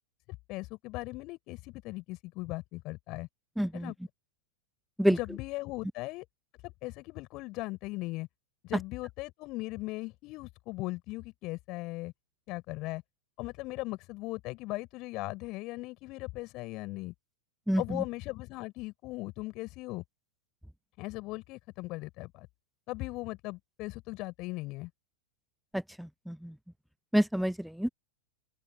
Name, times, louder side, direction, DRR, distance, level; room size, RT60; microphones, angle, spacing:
voice 1, 0.5-3.3 3.7-3.9 5.1-6.2 6.6-8.3 8.6-12.1 12.5-13.0 13.4-17.1 17.8-20.0 21.0-22.5 22.9-24.9, left 21 dB, 40° left, 6.7 m, -38 dB
voice 2, 3.6-3.9 5.0-5.2 17.7-18.0 25.7-26.6 27.1-27.9, equal, ahead, 0.8 m, -28 dB
open air
figure-of-eight pair, 90°, 0 cm